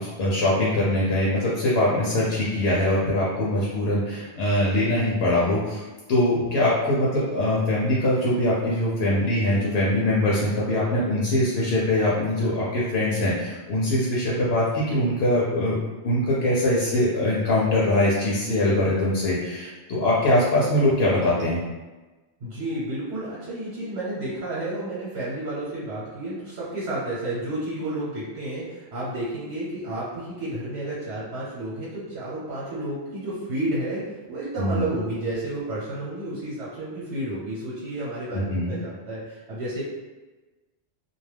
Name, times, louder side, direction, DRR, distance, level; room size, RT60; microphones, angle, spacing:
voice 1, 0.2-5.8 6.1-15.8 16.0-21.6 34.6-34.9 38.3-38.7, left 1 dB, 75° left, -6 dB, 0.8 m, -22 dB
voice 2, 22.4-39.8, right 1 dB, 85° right, -8 dB, 1.1 m, -31 dB
2.2 x 2.2 x 3.2 m, 1.2 s
omnidirectional pair, 1.1 m